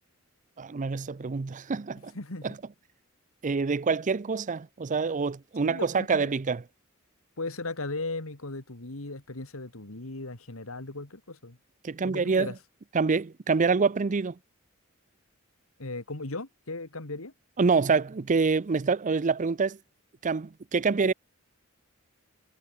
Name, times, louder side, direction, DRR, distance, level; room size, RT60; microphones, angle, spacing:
voice 1, 0.6-2.1 2.4-2.5 3.4-6.6 11.8-12.5 12.9-14.4 17.6-19.8 20.2-21.1, right 4 dB, 35° right, 0.5 m, -26 dB
voice 2, 2.0-2.5 5.6-6.3 7.4-11.6 12.0-12.6 15.8-17.3, left 2 dB, 80° left, 2.5 m, -37 dB
head